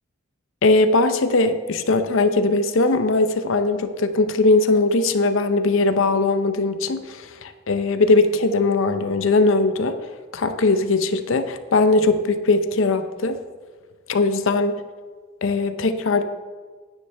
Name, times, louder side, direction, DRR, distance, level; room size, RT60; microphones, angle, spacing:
voice 1, 0.6-10.0 10.3-13.4 14.1-14.8 15.4-16.2, left 3 dB, 75° left, 10 dB, 0.6 m, -20 dB
9.7 x 9.6 x 3.4 m, 1.4 s
head